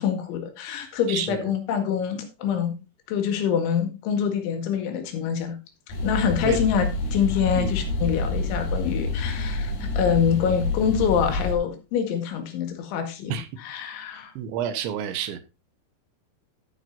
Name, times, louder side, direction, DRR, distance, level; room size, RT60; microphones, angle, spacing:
voice 1, 0.0-2.7 3.1-5.6 5.9-14.3, left 7 dB, 80° left, 4.2 m, -25 dB
voice 2, 1.1-1.5 6.4-6.6 7.6-7.7 13.3-13.5 14.4-15.4, right 9 dB, 80° right, 3.4 m, -29 dB
sound 1, 5.9-11.5, left 2 dB, 60° left, 3.6 m, -28 dB
12.0 x 9.6 x 2.7 m
omnidirectional pair, 5.3 m